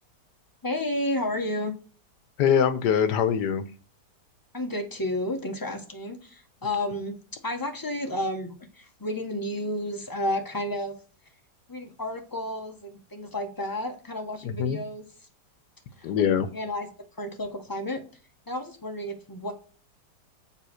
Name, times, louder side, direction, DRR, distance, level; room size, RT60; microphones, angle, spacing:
voice 1, 0.6-1.7 4.5-7.1 7.4-10.9 11.7-15.0 16.0-16.9 17.2-18.0 18.5-19.5, left 1 dB, 15° left, 4 dB, 1.0 m, -31 dB
voice 2, 2.4-3.6 14.4-14.8 16.0-16.5, left 8 dB, 80° left, 11 dB, 1.3 m, -23 dB
7.2 x 3.7 x 6.2 m, 0.39 s
omnidirectional pair, 1.8 m